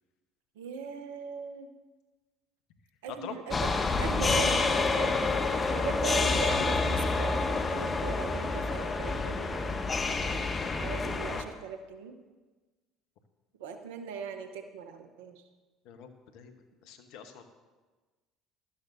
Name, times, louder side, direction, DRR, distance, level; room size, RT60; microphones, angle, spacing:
voice 1, 0.6-1.7 3.0-12.2 13.6-15.4, right 5 dB, 80° right, 7 dB, 1.0 m, -39 dB
sound 1, 3.5-11.4, left 3 dB, 30° left, 1.0 m, -28 dB
voice 2, 15.8-17.4, left 8 dB, 70° left, 7 dB, 1.2 m, -46 dB
15.5 x 13.0 x 2.7 m, 1.3 s
hypercardioid pair, 65°, 0 cm